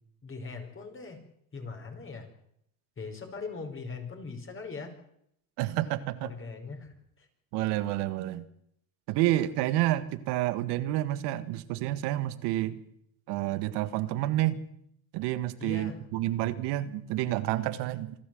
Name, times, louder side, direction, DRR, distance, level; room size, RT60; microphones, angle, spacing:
voice 1, 0.2-1.2 1.5-2.3 3.0-4.9 6.2-7.3 15.6-16.0, left 4 dB, 30° left, 4 dB, 5.2 m, -40 dB
voice 2, 5.6-6.3 7.5-8.5 9.1-12.8 13.3-14.6 15.1-18.1, right 15 dB, 75° right, 13 dB, 1.7 m, -29 dB
27.0 x 12.5 x 7.8 m, 0.74 s
supercardioid pair, 100°, 41 cm